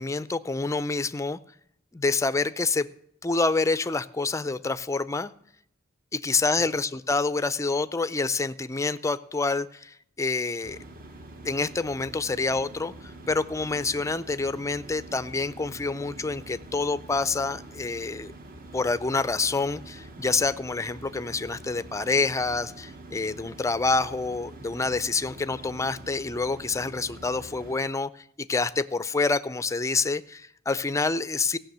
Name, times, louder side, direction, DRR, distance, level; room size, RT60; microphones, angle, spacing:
voice 1, 0.0-1.4 1.9-2.9 3.2-5.3 6.1-10.8 11.4-18.3 18.7-31.6, left 3 dB, 15° left, 14 dB, 0.4 m, -27 dB
sound 1, 10.6-27.8, right 2 dB, 45° right, 1.1 m, -45 dB
16.0 x 6.1 x 7.9 m, 0.72 s
head